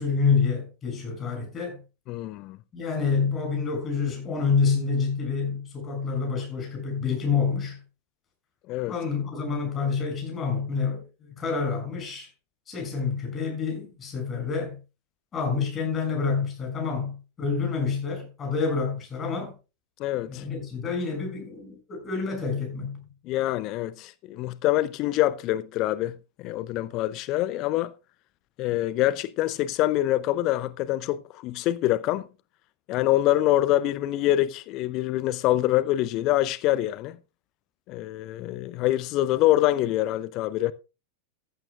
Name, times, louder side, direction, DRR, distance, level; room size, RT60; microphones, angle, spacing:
voice 1, 0.0-1.8 2.7-7.8 8.9-12.3 12.7-14.8 15.3-19.5 20.3-23.0, left 5 dB, 25° left, 7.1 m, -28 dB
voice 2, 2.1-2.6 8.7-8.9 20.0-20.4 23.3-27.9 28.6-32.3 32.9-37.2 37.9-40.7, left 15 dB, 40° left, 0.5 m, -25 dB
14.5 x 12.5 x 2.4 m
figure-of-eight pair, 90°, 0 cm